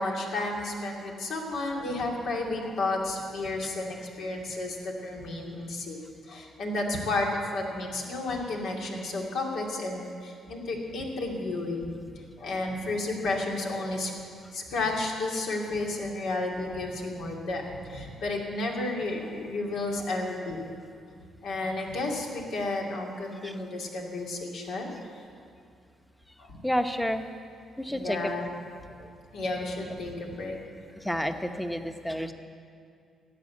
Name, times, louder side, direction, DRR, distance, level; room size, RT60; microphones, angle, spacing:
voice 1, 0.0-6.0 6.3-12.0 12.4-14.1 14.5-20.7 21.4-24.9 26.4-26.6 27.9-28.5 29.3-30.6, left 2 dB, 75° left, 0 dB, 2.5 m, -32 dB
voice 2, 26.6-27.3 27.8-28.3 29.0-29.1 31.0-32.3, equal, 5° left, 7 dB, 1.0 m, -30 dB
13.5 x 9.1 x 8.4 m, 2.3 s
cardioid pair, 90°, 0 cm